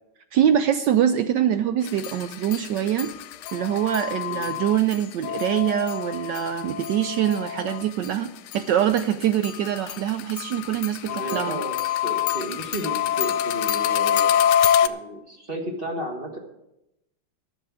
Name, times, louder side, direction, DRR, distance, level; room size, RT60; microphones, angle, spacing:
voice 1, 0.3-3.1 3.5-11.6, right 10 dB, 75° right, 10 dB, 1.0 m, -24 dB
sound 1, 1.9-8.1 8.5-14.9, left 10 dB, 80° left, 1.4 m, -26 dB
voice 2, 11.0-11.8 12.0-14.4 14.8-16.4, right 1 dB, 30° right, 2 dB, 1.4 m, -33 dB
11.0 x 6.8 x 8.5 m, 0.88 s
omnidirectional pair, 2.4 m